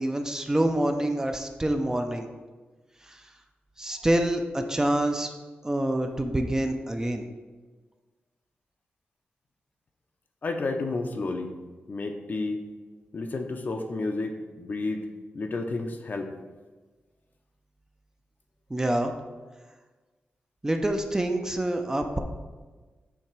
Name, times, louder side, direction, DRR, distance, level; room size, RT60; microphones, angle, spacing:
voice 1, 0.0-2.3 3.1-3.2 3.8-5.3 5.6-7.3 18.7-19.1 20.6-22.2, right 1 dB, 15° right, 5 dB, 0.5 m, -26 dB
voice 2, 10.4-11.5 11.9-12.6 13.1-15.0 15.3-16.3, left 3 dB, 50° left, 5 dB, 0.6 m, -31 dB
7.2 x 2.9 x 4.6 m, 1.3 s
wide cardioid pair, 120°, 4 cm